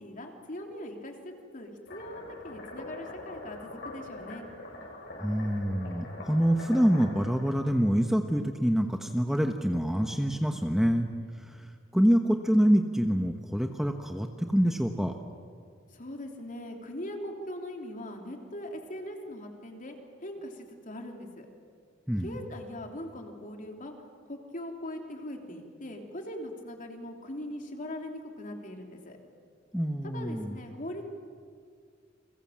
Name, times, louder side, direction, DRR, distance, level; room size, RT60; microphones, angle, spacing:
voice 1, 0.0-4.4 15.9-20.0 20.2-21.5 22.2-23.9 24.2-29.2 30.0-31.0, left 1 dB, 45° left, 3 dB, 3.3 m, -41 dB
sound 1, 1.9-7.5, left 2 dB, 65° left, 7.5 m, -43 dB
voice 2, 5.2-11.1 11.4-15.1 22.1-22.4 29.7-30.6, equal, ahead, 5 dB, 1.1 m, -26 dB
30.0 x 22.5 x 7.5 m, 2.1 s
head